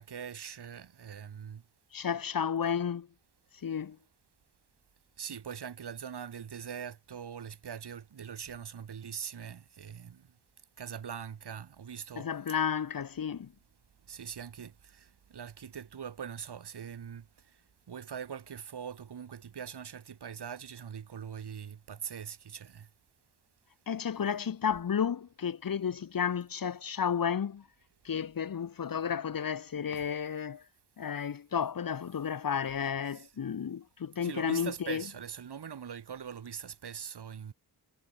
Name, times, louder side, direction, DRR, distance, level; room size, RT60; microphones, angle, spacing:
voice 1, 0.0-1.6 5.2-10.3 10.8-12.3 14.1-17.3 17.9-22.9 30.0-30.1 33.1-33.3 34.2-37.5, right 7 dB, 65° right, 3.4 m, -42 dB
voice 2, 1.9-3.1 3.6-4.0 12.2-13.5 23.9-27.6 28.0-30.6 31.0-35.0, left 7 dB, 50° left, 1.4 m, -32 dB
wide cardioid pair, 135°, 43 cm